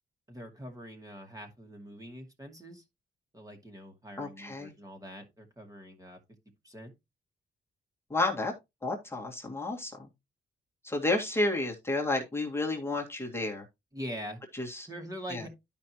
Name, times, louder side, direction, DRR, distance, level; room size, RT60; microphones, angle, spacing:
voice 1, 0.3-2.8 3.3-6.2 6.6-6.9 13.9-14.4 14.9-15.5, equal, 15° right, 2.4 m, -43 dB
voice 2, 4.2-4.7 8.1-8.5 8.8-9.9 10.8-13.6 14.5-14.9 15.3-15.4, left 2 dB, 10° left, 2.0 m, -31 dB
12.0 x 5.3 x 3.0 m
wide cardioid pair, 120°, 21 cm